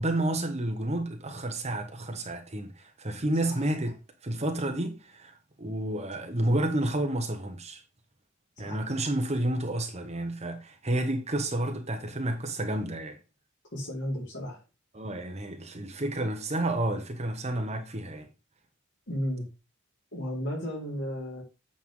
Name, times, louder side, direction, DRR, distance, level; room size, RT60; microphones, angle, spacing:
voice 1, 0.0-7.8 8.6-13.2 14.9-18.3, right 1 dB, 30° right, 1.1 m, -30 dB
voice 2, 13.7-14.6 19.1-19.4 20.1-21.4, equal, 60° left, 5.0 m, -34 dB
8.7 x 5.6 x 3.8 m
head